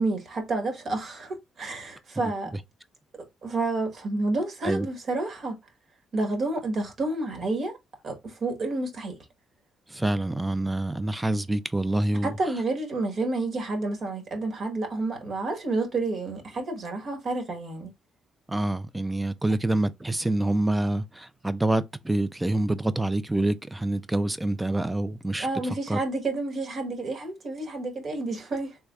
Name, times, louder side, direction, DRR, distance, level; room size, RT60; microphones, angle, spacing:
voice 1, 0.0-2.6 3.1-5.6 6.1-7.8 8.0-9.2 12.2-17.9 25.4-28.8, right 2 dB, 55° right, 1.4 m, -30 dB
voice 2, 9.9-12.4 18.5-26.0, right 1 dB, 10° right, 0.4 m, -26 dB
3.3 x 3.3 x 2.3 m
cardioid pair, 90°, 0 cm